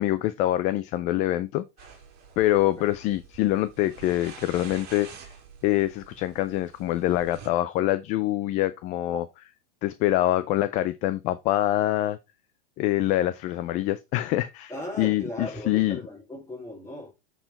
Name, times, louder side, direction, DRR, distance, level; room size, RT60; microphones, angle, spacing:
voice 1, 0.0-1.6 2.4-5.1 5.6-9.2 9.8-12.2 12.8-14.7 15.0-16.0, left 15 dB, 25° left, 0.4 m, -25 dB
sound 1, 1.8-7.5, right 6 dB, 30° right, 2.6 m, -47 dB
voice 2, 14.7-17.1, left 1 dB, 10° left, 3.6 m, -37 dB
7.6 x 4.6 x 4.3 m
supercardioid pair, 145°, 31 cm